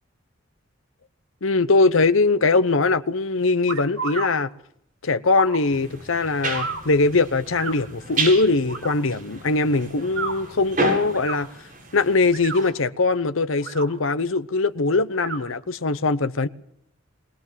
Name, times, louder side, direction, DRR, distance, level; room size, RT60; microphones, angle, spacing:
voice 1, 1.4-4.5 5.0-11.5 11.9-16.5, left 3 dB, 75° left, 0.9 m, -21 dB
sound 1, 3.7-4.3 5.3-5.6 6.5-6.8 7.6-7.8 8.7-8.9 10.0-10.3 11.1-11.4 12.2-12.7 13.5-13.9 15.1-15.4, right 4 dB, 75° right, 4.4 m, -31 dB
sound 2, 5.7-12.7, right 3 dB, 40° right, 8.0 m, -32 dB
23.0 x 18.5 x 7.5 m
head